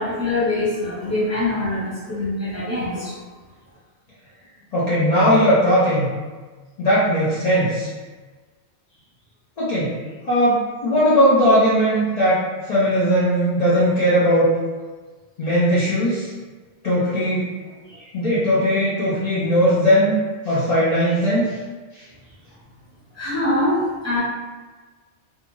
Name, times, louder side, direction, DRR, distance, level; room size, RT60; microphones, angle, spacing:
voice 1, 0.0-3.1 23.1-24.2, left 2 dB, 15° left, -10 dB, 0.8 m, -23 dB
voice 2, 4.7-6.1 6.8-7.9 9.6-9.9 10.3-12.4 12.7-14.5 15.4-16.3 16.8-17.5 17.9-21.6 21.9-22.0, equal, 55° left, -10 dB, 0.4 m, -18 dB
2.5 x 2.2 x 3.0 m, 1.4 s
omnidirectional pair, 1.3 m